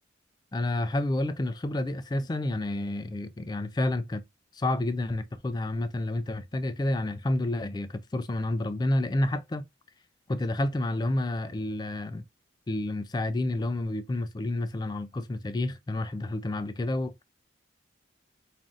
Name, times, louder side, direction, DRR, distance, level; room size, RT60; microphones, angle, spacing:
voice 1, 0.5-4.2 4.5-9.6 10.3-12.2 12.7-17.2, left 1 dB, 20° left, 0.3 m, -29 dB
5.2 x 2.5 x 2.4 m
head